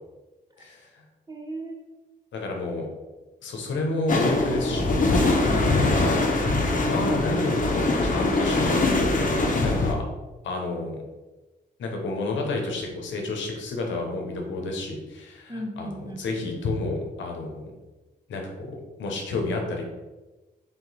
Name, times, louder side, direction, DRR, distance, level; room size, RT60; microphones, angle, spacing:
voice 1, 0.6-1.0 2.3-2.9 3.4-5.0 6.8-10.0 10.4-11.0 11.8-17.7 18.3-19.8, left 2 dB, 80° left, 1 dB, 0.8 m, -30 dB
voice 2, 1.3-1.9 5.4-6.4 7.1-7.3 15.5-16.4, right 1 dB, 20° right, 1 dB, 0.9 m, -37 dB
sound 1, 4.1-9.9, left 2 dB, 45° left, 0.8 m, -22 dB
3.7 x 2.9 x 4.0 m, 1.1 s
supercardioid pair, 55°, 19 cm